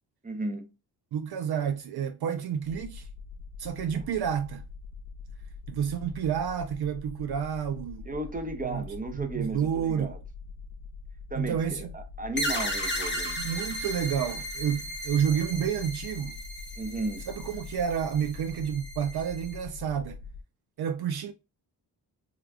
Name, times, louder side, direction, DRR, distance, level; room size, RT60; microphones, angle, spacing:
voice 1, 0.2-0.7 3.9-4.1 8.0-10.2 11.3-13.4 16.8-17.2, right 2 dB, 20° right, 0.6 m, -34 dB
voice 2, 1.1-3.1 3.6-4.6 5.7-8.1 8.6-8.8 9.1-10.1 11.3-11.9 13.4-16.4 17.3-20.2 20.8-21.3, right 8 dB, 65° right, 0.5 m, -30 dB
sound 1, 2.6-20.4, left 4 dB, 80° left, 0.5 m, -44 dB
sound 2, 12.4-19.6, equal, 25° left, 0.8 m, -35 dB
3.4 x 2.3 x 2.3 m
cardioid pair, 70°, 42 cm